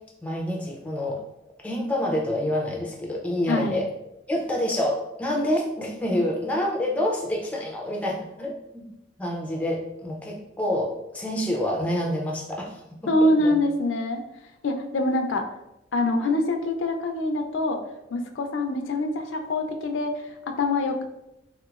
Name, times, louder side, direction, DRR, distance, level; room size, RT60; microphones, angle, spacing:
voice 1, 0.2-1.2 1.6-3.9 4.3-8.9 9.2-13.6, left 1 dB, 5° left, -1 dB, 0.3 m, -27 dB
voice 2, 3.5-3.8 13.1-14.2 14.6-15.5 15.9-17.8 18.1-21.0, left 2 dB, 90° left, 5 dB, 0.4 m, -25 dB
3.4 x 2.9 x 2.4 m, 0.88 s
head